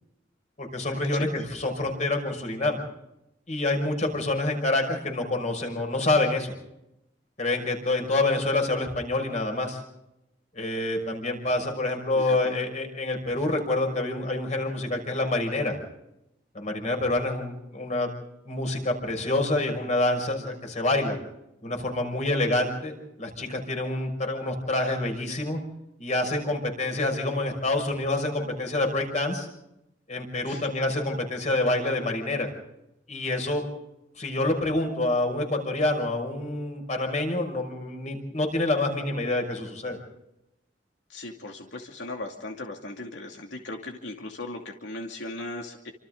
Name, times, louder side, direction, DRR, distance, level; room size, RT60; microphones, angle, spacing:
voice 1, 0.6-2.8 3.5-6.5 7.4-9.8 10.5-15.8 16.5-18.1 18.4-21.2 21.6-25.6 26.0-29.5 30.1-32.5 33.1-33.6 34.2-40.0, left 2 dB, 40° left, 4 dB, 6.0 m, -27 dB
voice 2, 12.1-12.5 30.4-30.6 41.1-45.9, left 2 dB, 90° left, 2 dB, 2.6 m, -38 dB
29.0 x 26.0 x 3.9 m, 0.87 s
head